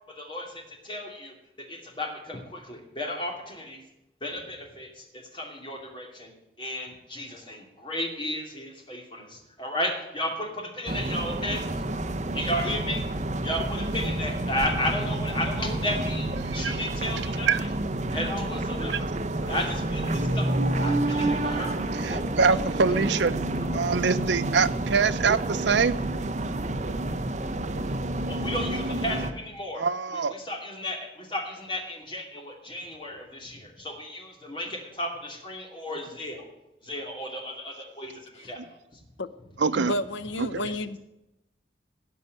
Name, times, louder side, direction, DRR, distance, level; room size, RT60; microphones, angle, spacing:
voice 1, 0.1-1.3 1.7-3.8 4.2-6.3 6.6-11.6 12.3-13.0 13.4-17.7 18.1-19.1 19.4-22.2 23.6-23.8 28.3-29.8 30.1-36.5 36.8-38.6 40.6-40.7, left 1 dB, 25° left, 0 dB, 2.7 m, -34 dB
sound 1, 10.9-29.3, right 1 dB, 40° right, 0.8 m, -29 dB
voice 2, 21.8-23.3 23.7-26.0 29.8-30.3 39.6-39.9 40.4-40.6, right 5 dB, 75° right, 13 dB, 0.6 m, -24 dB
voice 3, 39.8-41.0, left 1 dB, 85° left, 13 dB, 0.8 m, -31 dB
16.5 x 5.5 x 9.3 m, 0.92 s
head